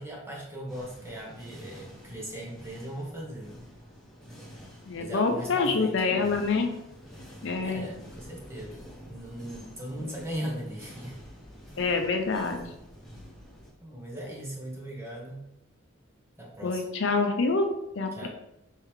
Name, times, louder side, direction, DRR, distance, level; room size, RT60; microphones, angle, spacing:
voice 1, 0.0-3.6 4.9-6.5 7.6-11.2 13.8-15.5 16.4-16.8 18.1-18.3, right 1 dB, 15° right, -3 dB, 0.9 m, -39 dB
sound 1, 0.7-13.7, equal, ahead, 1.5 m, -48 dB
voice 2, 4.9-6.7 7.4-7.9 10.0-10.1 11.8-12.7 16.6-18.3, left 4 dB, 65° left, 4 dB, 0.5 m, -27 dB
4.4 x 3.6 x 3.1 m, 0.85 s
head